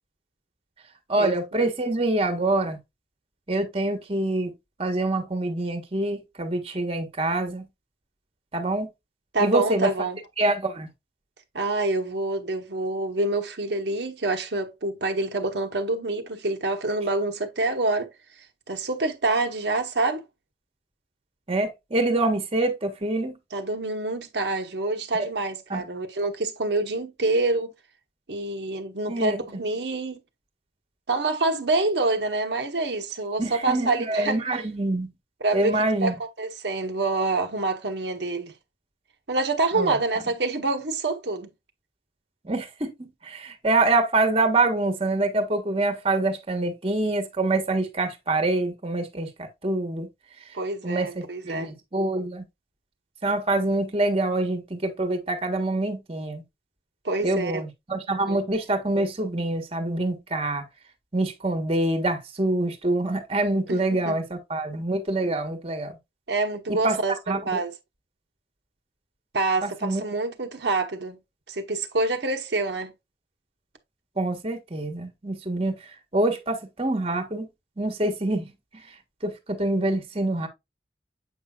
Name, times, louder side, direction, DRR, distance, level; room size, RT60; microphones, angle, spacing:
voice 1, 1.1-2.8 3.5-4.5 4.8-7.7 8.5-8.9 9.4-9.9 10.4-10.9 21.5-23.4 25.2-25.3 25.7-25.8 29.1-29.4 33.4-35.1 35.5-36.1 39.7-40.0 42.4-42.9 43.2-50.1 50.8-52.4 53.2-56.4 57.2-60.6 61.1-66.0 66.7-67.0 67.3-67.6 69.6-70.0 74.2-75.7 76.1-77.5 77.8-78.8 79.2-80.5, right 2 dB, 35° right, 1.3 m, -25 dB
voice 2, 9.3-10.2 11.5-18.1 18.7-20.2 23.5-27.7 28.3-30.2 31.1-34.4 35.4-38.5 39.3-41.5 50.5-51.8 57.0-57.6 58.3-58.4 63.7-64.1 66.3-67.2 67.4-67.7 69.3-71.2 71.5-72.9, right 2 dB, 75° right, 1.1 m, -26 dB
7.9 x 5.5 x 2.3 m
head